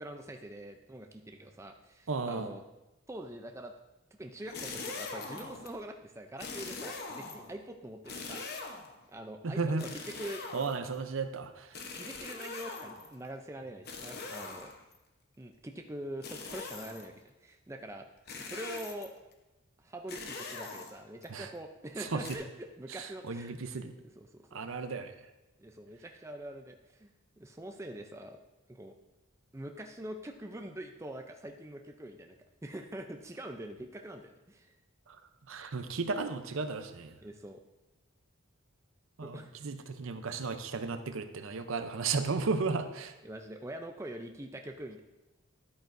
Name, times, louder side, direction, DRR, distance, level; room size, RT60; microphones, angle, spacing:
voice 1, 0.0-2.6 3.1-3.7 4.2-8.4 9.1-9.7 10.1-10.4 12.0-14.7 15.4-17.1 17.4-18.1 18.4-19.1 19.8-23.5 24.2-24.6 25.6-27.1 27.4-28.4 28.7-29.0 29.5-34.8 37.2-37.6 39.2-39.5 43.2-45.0, right 1 dB, 15° right, 4 dB, 0.4 m, -44 dB
voice 2, 2.1-2.5 9.4-9.9 10.5-11.8 21.3-21.5 22.0-22.2 22.9-23.9 24.5-25.1 35.1-35.2 35.5-37.2 39.2-43.1, right 4 dB, 65° right, 9 dB, 0.6 m, -34 dB
sound 1, 4.4-5.7 6.4-7.6 8.1-9.0 9.8-11.0 11.7-13.2 13.9-15.0 16.2-17.1 18.3-19.2 20.1-21.3 22.2-22.4, left 4 dB, 45° left, 0.9 m, -42 dB
10.5 x 8.8 x 2.6 m, 1.0 s
head